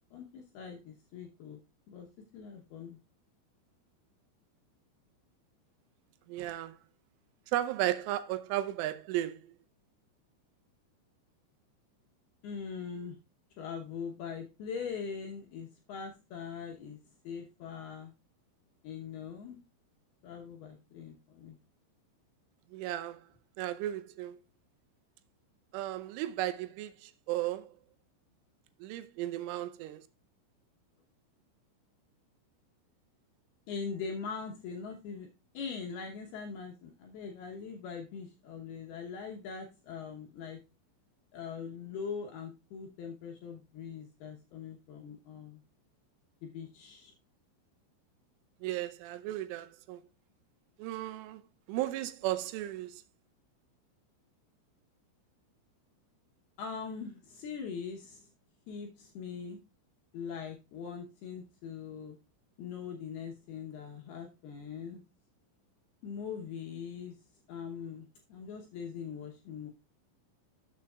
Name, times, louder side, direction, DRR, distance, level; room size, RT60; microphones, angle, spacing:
voice 1, 0.1-1.6 1.9-2.1 2.3-3.0 12.4-13.2 13.6-17.0 17.2-18.1 18.8-19.6 20.2-21.6 33.7-35.3 35.5-40.6 41.3-45.6 46.4-47.1 56.6-58.3 58.7-59.6 60.1-62.2 62.6-65.0 66.0-67.2 67.5-69.7, left 6 dB, 75° left, 2.4 m, -42 dB
voice 2, 6.3-6.8 7.5-9.4 22.7-23.2 23.6-24.4 25.7-27.7 28.8-30.0 48.6-50.0 50.8-51.4 51.7-53.0, right 14 dB, 85° right, 3.1 m, -35 dB
12.5 x 7.4 x 2.3 m
omnidirectional pair, 5.8 m